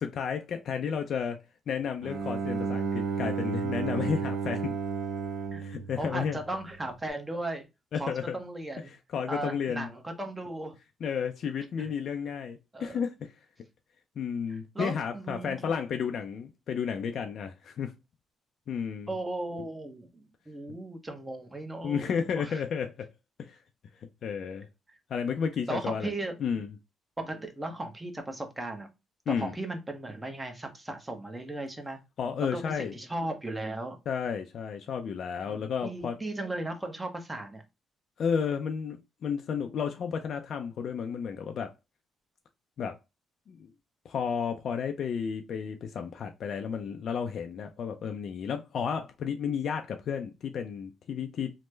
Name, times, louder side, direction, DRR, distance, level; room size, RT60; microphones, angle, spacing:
voice 1, 0.0-1.4 1.7-4.8 5.6-6.4 7.9-8.4 8.9-9.9 11.0-13.3 14.2-17.9 18.7-19.2 21.8-23.1 23.4-23.6 24.2-24.7 25.1-26.1 26.4-26.7 29.3-29.6 32.2-32.9 34.1-36.2 38.2-41.7 42.8-43.0 43.5-43.7 44.0-51.5, left 7 dB, 60° left, 0.4 m, -32 dB
Bowed string instrument, 2.0-6.9, right 5 dB, 60° right, 1.4 m, -33 dB
voice 2, 6.0-7.7 8.0-8.9 9.3-10.7 11.8-11.9 12.7-13.0 14.7-15.7 19.1-22.6 25.7-26.3 27.2-28.9 29.3-32.0 32.4-34.0 35.5-37.6, right 2 dB, 15° right, 0.8 m, -36 dB
3.2 x 2.1 x 3.1 m
cardioid pair, 90°, 0 cm